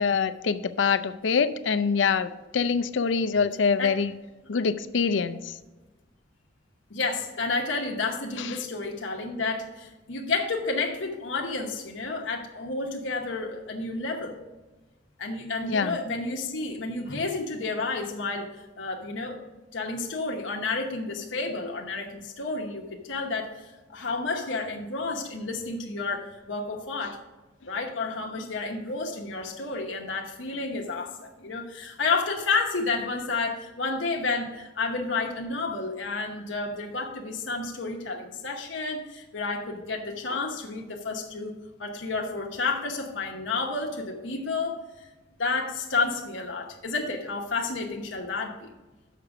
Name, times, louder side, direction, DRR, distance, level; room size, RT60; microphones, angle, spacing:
voice 1, 0.0-4.1 4.5-5.6 8.4-8.5 15.6-16.0, left 5 dB, 75° left, 12 dB, 0.5 m, -25 dB
voice 2, 6.9-14.4 15.2-18.5 18.8-19.4 19.7-27.2 27.7-45.1 45.4-48.7, left 3 dB, 90° left, 1 dB, 1.0 m, -31 dB
6.7 x 5.9 x 6.0 m, 1.1 s
head